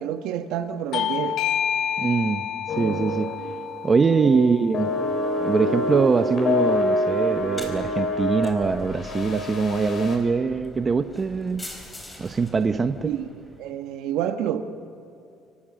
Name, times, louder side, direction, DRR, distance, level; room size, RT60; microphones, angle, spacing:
voice 1, 0.0-1.4 4.2-4.5 13.0-13.3 13.6-14.7, right 10 dB, 80° right, 7 dB, 1.6 m, -28 dB
Bell / Doorbell, 0.9-6.1, left 9 dB, 65° left, 0.8 m, -30 dB
voice 2, 2.0-2.4 2.8-3.3 3.8-4.9 5.4-11.6 12.2-13.2, right 4 dB, 25° right, 9 dB, 0.9 m, -23 dB
sound 1, 2.7-3.5 3.8-4.0 4.7-10.2, left 1 dB, 40° left, 5.2 m, -26 dB
Take shopping cart, 7.3-13.7, left 1 dB, 10° left, 4.3 m, -43 dB
29.0 x 24.5 x 6.4 m, 2.6 s
cardioid pair, 130°, 0 cm